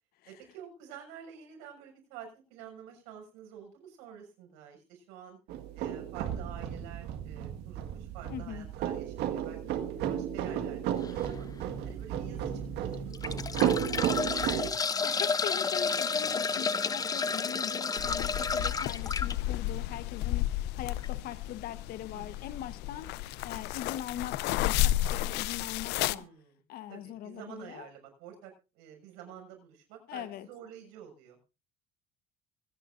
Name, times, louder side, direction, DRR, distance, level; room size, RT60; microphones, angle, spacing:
voice 1, 0.2-5.4 5.7-11.5 11.8-13.8 22.1-22.5 26.0-26.6 26.9-31.4, right 8 dB, 90° right, 6.5 m, -49 dB
sound 1, 5.5-14.7, right 9 dB, 75° right, 1.8 m, -33 dB
voice 2, 8.3-8.7 15.0-23.1 23.4-26.3 26.7-27.9 30.1-30.5, left 11 dB, 60° left, 1.2 m, -41 dB
sound 2, 11.0-11.3 11.9-12.0 12.9-19.3 20.9-21.1 21.3-21.4, left 5 dB, 20° left, 0.7 m, -31 dB
sound 3, 18.0-26.2, left 15 dB, 75° left, 0.6 m, -32 dB
25.0 x 10.0 x 2.6 m
cardioid pair, 120°, 17 cm